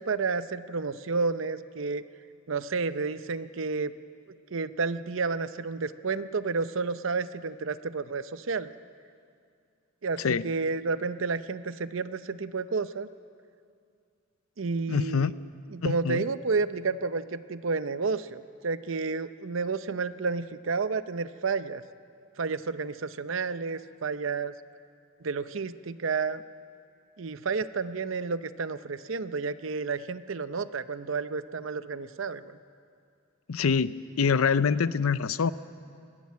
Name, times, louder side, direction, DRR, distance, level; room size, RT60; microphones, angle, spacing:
voice 1, 0.0-2.0 2.5-3.9 4.5-8.7 10.0-13.1 14.6-15.3 15.7-21.8 22.4-24.5 25.2-26.4 27.2-32.6, right 4 dB, 65° right, 13 dB, 0.6 m, -31 dB
voice 2, 14.9-15.3 15.8-16.2 33.5-35.5, left 6 dB, 90° left, 16 dB, 0.6 m, -25 dB
20.0 x 15.0 x 9.4 m, 2.4 s
head